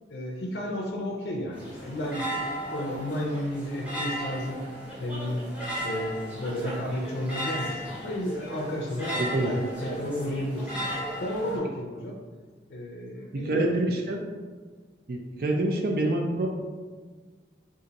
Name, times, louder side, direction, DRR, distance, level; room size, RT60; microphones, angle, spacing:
voice 1, 0.1-2.3 2.7-4.6 5.0-5.4 5.8-10.8 11.2-12.2 12.7-13.7, equal, 75° left, -1 dB, 0.5 m, -32 dB
sound 1, 1.5-11.6, equal, 10° right, 0.9 m, -36 dB
voice 2, 9.1-9.5 13.3-14.2 15.1-16.5, right 1 dB, 55° right, 1 dB, 0.4 m, -26 dB
3.9 x 2.5 x 3.9 m, 1.5 s
head